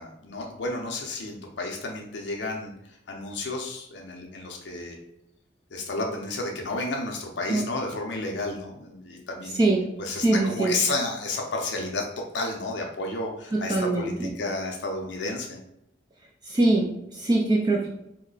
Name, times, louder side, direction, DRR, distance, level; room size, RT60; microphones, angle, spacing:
voice 1, 0.0-2.7 3.1-5.0 5.7-9.7 10.0-12.0 12.3-15.6, left 2 dB, 65° left, 1 dB, 0.5 m, -31 dB
voice 2, 10.2-10.8 13.5-14.3 16.4-17.9, right 2 dB, 20° right, -2 dB, 0.3 m, -23 dB
3.0 x 2.1 x 3.8 m, 0.83 s
head